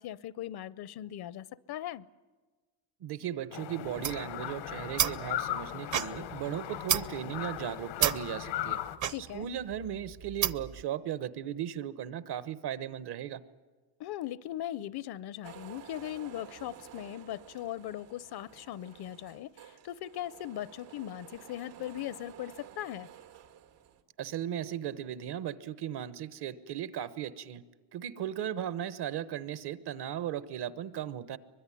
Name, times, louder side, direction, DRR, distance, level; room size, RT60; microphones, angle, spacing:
voice 1, 0.0-2.1 9.1-9.5 14.0-23.1, left 12 dB, 60° left, 0.7 m, -39 dB
voice 2, 3.0-8.8 9.3-13.4 24.2-27.6 27.9-31.4, right 10 dB, 65° right, 1.1 m, -36 dB
sound 1, 3.5-9.0, left 13 dB, 85° left, 1.3 m, -38 dB
sound 2, 3.8-10.8, right 9 dB, 45° right, 0.8 m, -33 dB
sound 3, 15.4-24.0, right 10 dB, 85° right, 1.9 m, -52 dB
23.5 x 21.5 x 10.0 m
cardioid pair, 120°, 43 cm